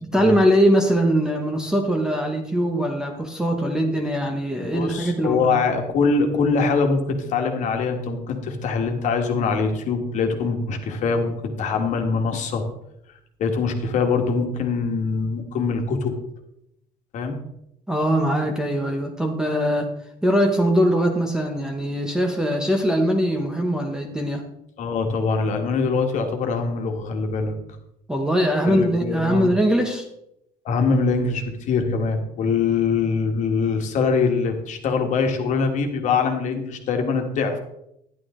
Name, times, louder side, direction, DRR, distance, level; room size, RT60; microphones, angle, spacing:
voice 1, 0.0-5.5 17.9-19.9 20.2-24.4 28.1-30.1, equal, 5° right, 3 dB, 0.9 m, -21 dB
voice 2, 4.7-12.6 13.4-16.1 17.1-17.4 24.8-27.5 28.6-29.5 30.6-37.6, left 4 dB, 45° left, 4 dB, 1.7 m, -23 dB
11.5 x 11.0 x 3.7 m, 0.80 s
cardioid pair, 175°, 17 cm